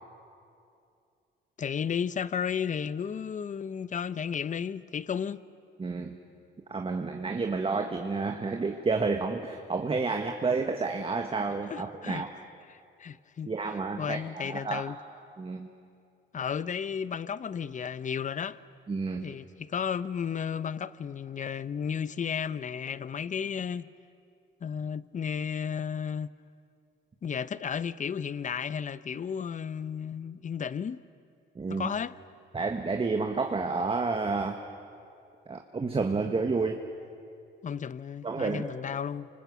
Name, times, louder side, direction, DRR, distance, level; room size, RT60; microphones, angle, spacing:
voice 1, 1.6-5.4 11.7-12.2 12.7-13.5 14.0-15.0 16.3-18.6 19.2-23.9 24.6-26.3 27.2-31.0 31.7-32.2 37.6-39.3, left 7 dB, 40° left, 0.8 m, -33 dB
voice 2, 5.8-6.2 6.7-12.3 13.5-14.8 15.4-15.7 18.9-19.3 31.5-31.9 32.5-34.7 35.5-36.8 38.2-38.6, right 4 dB, 30° right, 1.6 m, -30 dB
28.0 x 25.0 x 8.3 m
cardioid pair, 90°, 20 cm